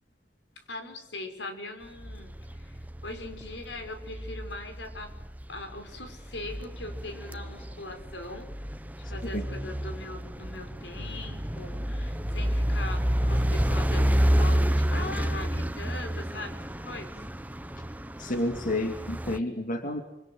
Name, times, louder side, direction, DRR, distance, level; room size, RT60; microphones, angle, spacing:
voice 1, 0.6-5.1 5.5-8.5 9.0-17.2 18.2-18.4, left 2 dB, 85° left, 6 dB, 5.7 m, -41 dB
sound 1, 2.0-19.4, equal, 10° right, 0.9 m, -30 dB
voice 2, 18.2-20.0, left 1 dB, 50° left, 5 dB, 2.5 m, -30 dB
28.0 x 26.5 x 7.8 m, 0.91 s
head